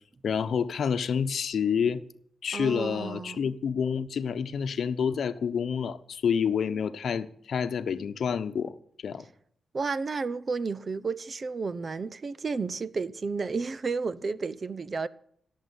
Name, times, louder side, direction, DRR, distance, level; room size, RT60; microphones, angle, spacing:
voice 1, 0.2-2.0 2.4-8.8 9.0-9.2, left 7 dB, 75° left, 0.9 m, -28 dB
voice 2, 2.5-3.4 9.7-15.1, right 4 dB, 45° right, 0.8 m, -32 dB
17.0 x 7.5 x 9.5 m
cardioid pair, 70°, 0 cm